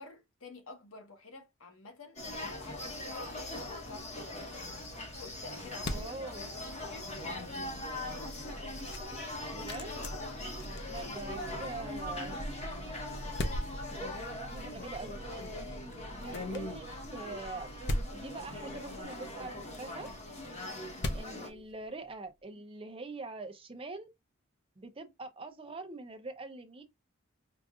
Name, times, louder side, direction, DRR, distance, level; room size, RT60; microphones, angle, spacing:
voice 1, 0.0-3.4 3.8-4.9 5.2-7.7 10.6-11.0 11.4-12.3 21.4-21.7, left 3 dB, 80° left, 1.2 m, -50 dB
sound 1, 2.2-21.5, left 1 dB, 30° left, 1.2 m, -41 dB
sound 2, 4.9-22.3, left 1 dB, 55° left, 0.6 m, -43 dB
voice 2, 5.9-6.5 9.5-9.9 10.9-12.4 14.5-15.2 16.1-16.9 17.1-17.7 18.1-20.1 21.1-24.1 24.8-26.8, right 3 dB, 25° right, 0.6 m, -43 dB
sound 3, 6.4-19.0, right 1 dB, 70° right, 0.7 m, -48 dB
4.8 x 2.5 x 2.4 m
head